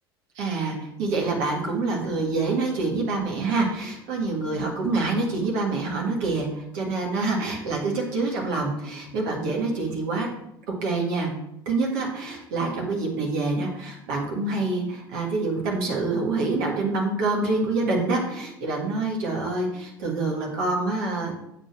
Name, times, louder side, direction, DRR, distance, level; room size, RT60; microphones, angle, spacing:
voice 1, 0.4-10.3 10.7-11.3 11.7-21.3, right 3 dB, 55° right, 0 dB, 1.9 m, -26 dB
7.8 x 4.2 x 6.1 m, 0.80 s
figure-of-eight pair, 70°, 13 cm